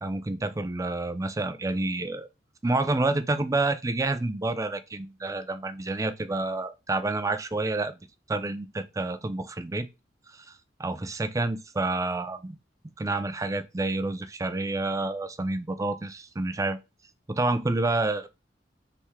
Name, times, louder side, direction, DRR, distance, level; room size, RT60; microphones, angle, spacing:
voice 1, 0.0-2.3 2.6-8.0 8.3-9.9 10.3-12.6 13.0-16.8 17.3-18.3, right 2 dB, 20° right, 0.4 m, -29 dB
3.5 x 3.1 x 4.2 m
head